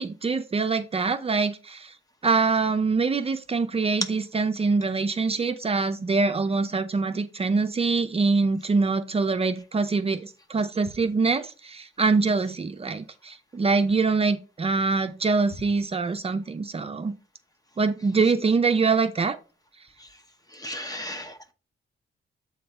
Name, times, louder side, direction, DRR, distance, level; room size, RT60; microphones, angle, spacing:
voice 1, 0.0-1.9 2.2-17.1 17.8-19.4, right 4 dB, 30° right, 8 dB, 0.5 m, -24 dB
voice 2, 20.6-21.5, left 1 dB, 20° left, 8 dB, 0.9 m, -35 dB
7.8 x 3.8 x 4.3 m, 0.34 s
wide cardioid pair, 130°, 19 cm